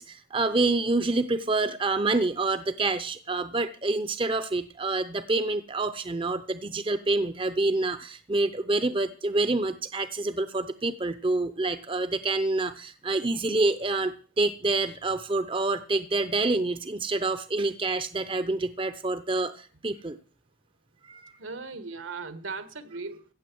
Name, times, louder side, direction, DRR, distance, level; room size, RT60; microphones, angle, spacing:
voice 1, 0.0-20.2 21.1-21.2, right 2 dB, 25° right, 0.6 m, -27 dB
voice 2, 21.4-23.3, right 4 dB, 75° right, 1.5 m, -38 dB
15.5 x 7.7 x 7.7 m
head